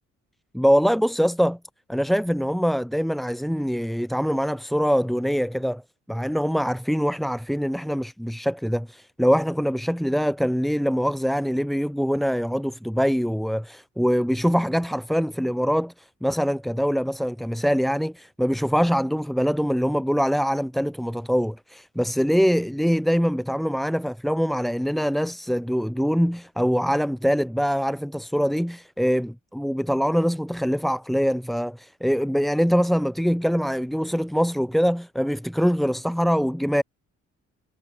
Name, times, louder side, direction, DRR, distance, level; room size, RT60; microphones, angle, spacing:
voice 1, 0.5-1.6 1.9-5.8 6.1-36.8, equal, ahead, 6.3 m, -23 dB
cardioid pair, 90°, 30 cm